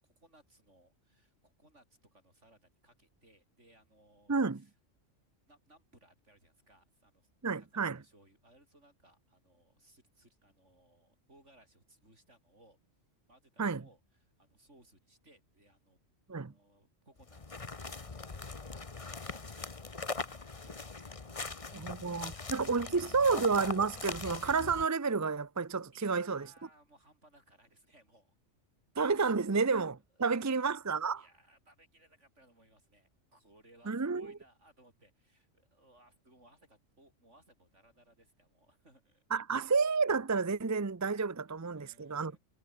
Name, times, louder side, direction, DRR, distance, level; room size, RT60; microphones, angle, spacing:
voice 1, 0.2-4.7 5.5-12.8 13.3-16.0 16.3-23.1 25.9-28.4 30.1-30.6 31.2-39.2 41.7-42.4, right 1 dB, 70° right, 8.6 m, -64 dB
voice 2, 4.3-4.6 7.4-8.0 13.6-13.8 16.3-16.5 21.7-26.5 29.0-31.2 33.9-34.3 39.3-42.4, right 4 dB, 20° right, 0.4 m, -30 dB
sound 1, 17.2-24.9, left 4 dB, 30° left, 1.2 m, -41 dB
omnidirectional pair, 1.3 m